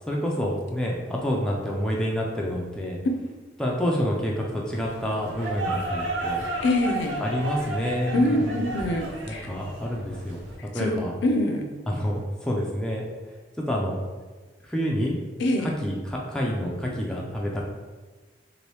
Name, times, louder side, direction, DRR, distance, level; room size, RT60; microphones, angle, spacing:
voice 1, 0.1-3.0 3.6-6.4 7.2-8.7 9.3-10.4 10.7-11.1 11.9-13.1 13.7-14.0 14.6-15.2 15.6-17.6, equal, 5° left, -3 dB, 0.3 m, -28 dB
sound 1, 4.7-10.6, right 2 dB, 80° right, 0.6 m, -32 dB
voice 2, 6.6-7.2 8.1-9.5 10.7-11.0 11.2-11.6 15.4-15.7, left 1 dB, 70° left, 4 dB, 0.4 m, -24 dB
2.8 x 2.6 x 3.2 m, 1.4 s
head